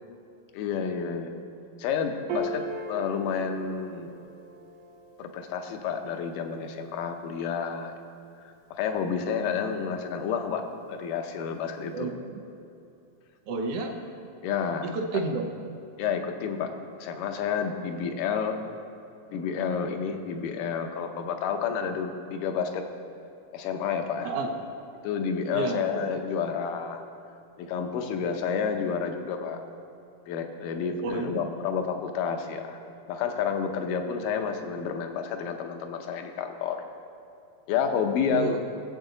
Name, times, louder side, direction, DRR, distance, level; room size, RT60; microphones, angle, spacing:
voice 1, 0.5-1.3 1.8-4.2 5.2-7.9 8.4-12.1 14.4-14.9 16.0-16.7 17.0-18.6 19.3-22.8 23.5-24.3 25.0-27.0 27.6-29.6 30.3-36.8 37.7-38.6, left 6 dB, 75° left, 5 dB, 2.3 m, -30 dB
Piano, 2.3-8.9, right 1 dB, 70° right, 1.5 m, -41 dB
voice 2, 11.9-12.4 13.5-14.0 14.8-15.5 24.2-24.5 25.5-26.1 31.0-31.5 38.3-38.6, right 3 dB, 90° right, 2 dB, 1.3 m, -31 dB
19.5 x 8.0 x 3.9 m, 2.6 s
omnidirectional pair, 4.0 m